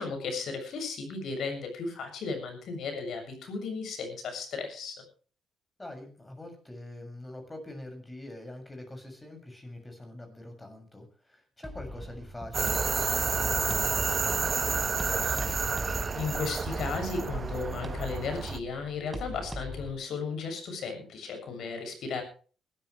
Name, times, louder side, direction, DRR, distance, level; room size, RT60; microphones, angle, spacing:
voice 1, 0.0-5.0 16.1-22.2, left 4 dB, 70° left, 5 dB, 7.1 m, -35 dB
voice 2, 5.8-15.7, left 1 dB, 15° left, 5 dB, 6.8 m, -45 dB
sound 1, 11.6-19.9, left 1 dB, 5° right, 3.6 m, -42 dB
sound 2, 12.5-18.6, right 5 dB, 35° right, 1.0 m, -30 dB
21.5 x 13.5 x 3.4 m, 0.39 s
cardioid pair, 90°, 0 cm